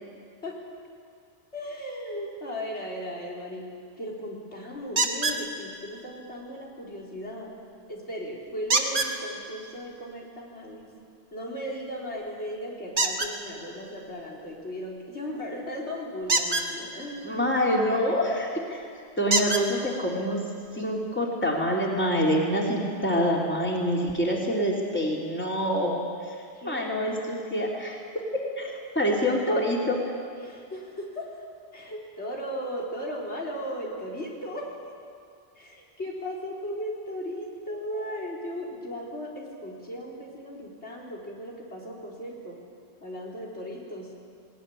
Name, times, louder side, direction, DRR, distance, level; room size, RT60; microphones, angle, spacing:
voice 1, 1.5-3.7 4.0-7.5 7.9-10.9 11.3-17.4 26.5-26.9 30.4-31.4 31.7-34.7 35.6-42.6 43.0-44.1, equal, 80° left, -3 dB, 4.2 m, -36 dB
sound 1, 5.0-5.4 8.7-9.1 12.9-13.3 16.2-16.7 18.3-18.4 19.3-19.6 20.6-20.7 21.2-21.3, right 3 dB, 50° right, 1.8 m, -24 dB
voice 2, 17.2-18.8 19.2-20.4 20.7-25.9 26.3-26.4 26.6-28.0 28.6-30.0, equal, 10° left, -2 dB, 3.3 m, -26 dB
20.0 x 18.5 x 9.9 m, 2.3 s
omnidirectional pair, 1.1 m